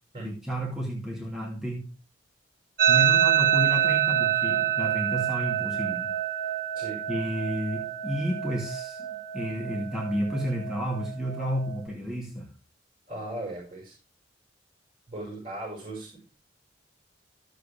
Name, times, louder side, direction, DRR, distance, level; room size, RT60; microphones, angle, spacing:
voice 1, 0.2-1.9 2.9-6.1 7.1-9.1 9.3-12.5, equal, 5° right, -4 dB, 2.6 m, -31 dB
sound 1, 2.8-11.8, right 11 dB, 55° right, 1.6 m, -27 dB
voice 2, 13.1-14.0 15.1-16.2, right 1 dB, 30° right, -3 dB, 5.9 m, -37 dB
15.0 x 8.2 x 3.4 m, 0.34 s
head